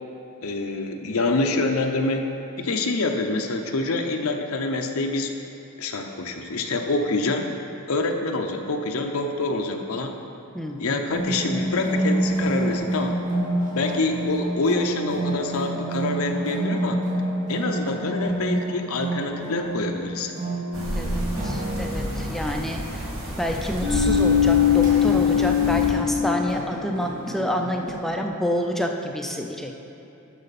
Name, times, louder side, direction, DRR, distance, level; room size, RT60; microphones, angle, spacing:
voice 1, 0.4-2.3 2.6-5.3 5.8-7.5 7.9-10.1 10.8-13.2 13.7-17.0 17.5-20.3, left 2 dB, 70° left, 3 dB, 0.7 m, -26 dB
voice 2, 10.5-11.0 20.9-23.1 23.4-29.8, equal, ahead, 2 dB, 0.4 m, -28 dB
sound 1, 11.1-27.9, right 1 dB, 35° right, 2.3 m, -29 dB
sound 2, 20.7-25.9, left 6 dB, 70° right, 2.0 m, -22 dB
12.0 x 6.4 x 4.1 m, 2.9 s
head